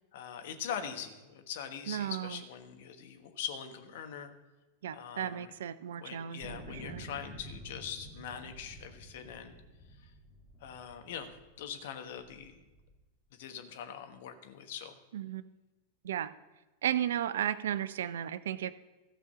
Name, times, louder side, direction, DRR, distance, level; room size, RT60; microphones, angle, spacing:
voice 1, 0.1-4.3 4.9-5.5 6.0-9.5 10.0-10.1 10.6-11.3 11.6-12.7 13.3-14.9, left 8 dB, 55° left, 7 dB, 1.3 m, -42 dB
voice 2, 1.9-2.4 4.8-7.0 15.1-15.4 16.0-16.3 16.8-18.7, right 10 dB, 60° right, 16 dB, 0.4 m, -34 dB
sound 1, 6.4-11.6 12.2-12.9, right 1 dB, 5° left, 2.9 m, -50 dB
15.0 x 5.1 x 6.9 m, 1.1 s
figure-of-eight pair, 90°, 0 cm